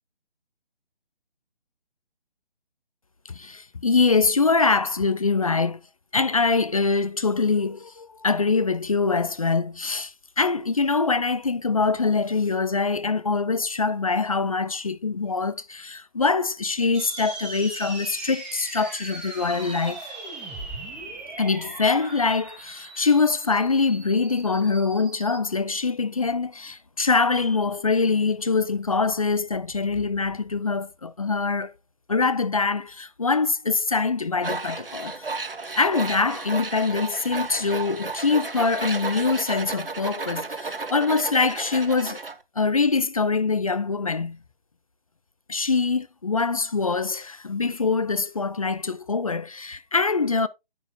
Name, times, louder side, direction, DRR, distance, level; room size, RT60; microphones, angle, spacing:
voice 1, 3.3-5.8 6.1-20.1 21.4-31.7 32.1-35.2 35.8-42.2 42.6-44.4 45.5-50.5, left 4 dB, 35° left, 0.5 m, -24 dB
sound 1, 16.9-25.4, right 3 dB, 5° right, 0.7 m, -39 dB
Tools, 34.4-42.4, right 3 dB, 70° right, 1.2 m, -33 dB
9.9 x 8.7 x 2.3 m
figure-of-eight pair, 145°, 30 cm